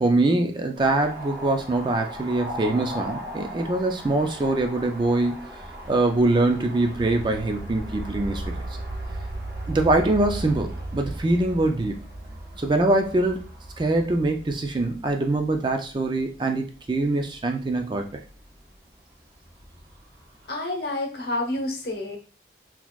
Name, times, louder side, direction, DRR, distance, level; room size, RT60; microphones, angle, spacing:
voice 1, 0.0-5.4 5.9-8.6 9.7-12.0 12.6-13.5 13.8-18.1, right 2 dB, 25° right, 5 dB, 0.4 m, -23 dB
sound 1, 0.8-16.4 16.7-20.5, right 1 dB, 60° right, 0.8 m, -37 dB
voice 2, 20.5-22.2, left 2 dB, 65° left, 2 dB, 0.9 m, -29 dB
4.0 x 2.8 x 2.3 m, 0.36 s
head